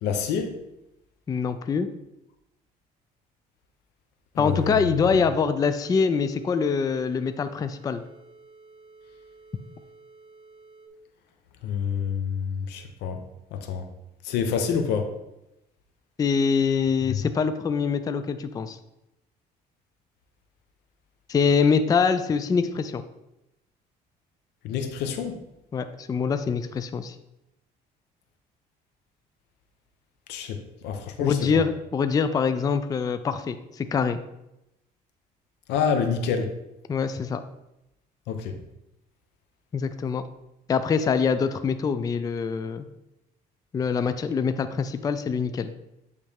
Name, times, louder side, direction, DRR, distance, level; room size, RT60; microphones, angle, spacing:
voice 1, 0.0-0.5 4.3-4.8 11.6-13.2 13.5-13.9 14.2-15.1 17.1-17.2 24.6-25.4 30.3-31.6 35.7-36.5 38.3-38.6, left 6 dB, 85° left, 7 dB, 0.7 m, -27 dB
voice 2, 1.3-1.9 4.4-8.0 16.2-18.8 21.3-23.0 25.7-27.2 31.2-34.2 36.9-37.4 39.7-40.2 40.7-42.9 43.7-45.7, left 5 dB, 20° left, 10 dB, 0.3 m, -24 dB
sound 1, 5.5-10.9, right 3 dB, 25° right, 0.8 m, -52 dB
8.5 x 3.2 x 3.5 m, 0.89 s
cardioid pair, 110°, 17 cm